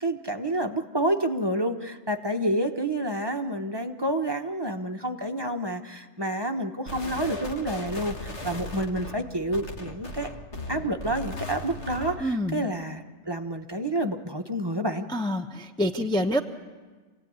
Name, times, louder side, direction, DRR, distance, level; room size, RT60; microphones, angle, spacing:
voice 1, 0.0-10.3 10.7-15.1, right 1 dB, 20° right, 4 dB, 1.1 m, -29 dB
sound 1, 6.9-12.3, left 1 dB, 60° left, 2.0 m, -37 dB
voice 2, 12.2-12.7 15.1-16.4, equal, 5° left, 3 dB, 0.8 m, -27 dB
27.0 x 17.0 x 9.5 m, 1.4 s
omnidirectional pair, 1.3 m